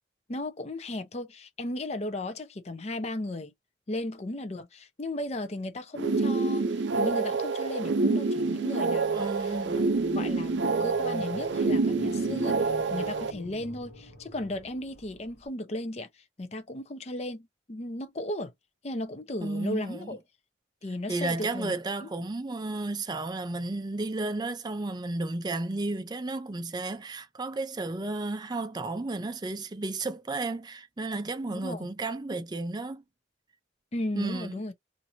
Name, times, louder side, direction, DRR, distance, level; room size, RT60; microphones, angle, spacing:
voice 1, 0.3-3.5 3.9-9.6 10.1-18.5 18.8-20.2 20.8-21.8 22.0-22.1 31.5-31.9 33.9-34.7, left 1 dB, 35° left, 0.5 m, -36 dB
sound 1, 5.9-13.3, right 3 dB, 75° right, 0.5 m, -27 dB
voice 2, 9.1-9.9 19.4-20.2 21.1-33.0 34.2-34.6, right 2 dB, 20° right, 0.4 m, -33 dB
sound 2, 9.5-15.5, left 2 dB, 60° left, 1.0 m, -45 dB
2.8 x 2.6 x 2.7 m
head